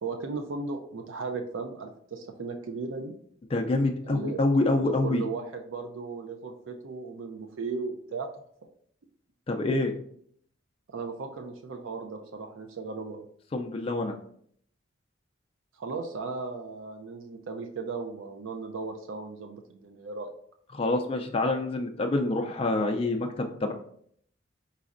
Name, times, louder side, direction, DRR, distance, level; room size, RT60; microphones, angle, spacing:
voice 1, 0.0-3.1 4.0-4.4 4.8-8.3 10.9-13.2 15.8-20.3, right 4 dB, 85° right, 5 dB, 0.5 m, -36 dB
voice 2, 3.5-5.2 9.5-9.9 13.5-14.1 20.7-23.7, left 2 dB, 30° left, 3 dB, 0.3 m, -26 dB
4.2 x 4.0 x 2.5 m, 0.64 s
head